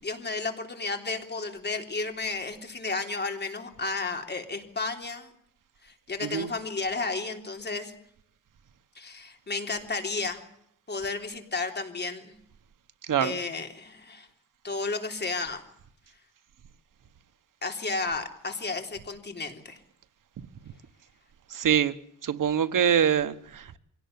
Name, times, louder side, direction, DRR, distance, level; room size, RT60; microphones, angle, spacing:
voice 1, 0.0-5.3 5.8-7.9 9.0-10.4 10.9-12.4 13.2-14.3 14.6-15.6 17.6-19.8, left 3 dB, 35° left, 3.5 m, -33 dB
voice 2, 21.5-21.9 22.2-23.8, right 8 dB, 80° right, 1.3 m, -24 dB
24.5 x 18.0 x 9.5 m
wide cardioid pair, 140°, 31 cm